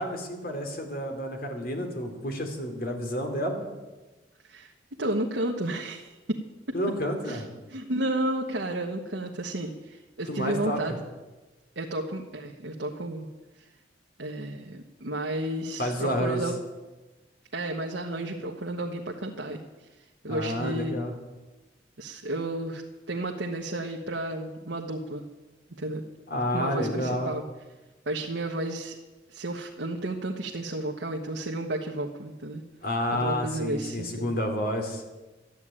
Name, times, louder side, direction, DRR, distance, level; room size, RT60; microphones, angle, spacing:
voice 1, 0.0-3.6 6.7-7.4 10.3-10.8 15.8-16.4 20.3-21.1 26.3-27.3 32.8-35.0, equal, 55° left, 4 dB, 2.8 m, -30 dB
voice 2, 5.0-6.4 6.7-6.8 7.2-7.4 7.7-11.0 11.7-13.3 13.6-13.7 14.2-16.6 17.5-19.6 20.2-21.0 22.0-22.8 23.1-25.3 25.8-26.0 26.5-27.4 28.0-29.0 29.3-32.6 33.1-34.3, right 1 dB, 85° right, 0 dB, 1.3 m, -32 dB
13.0 x 9.9 x 9.0 m, 1.1 s
head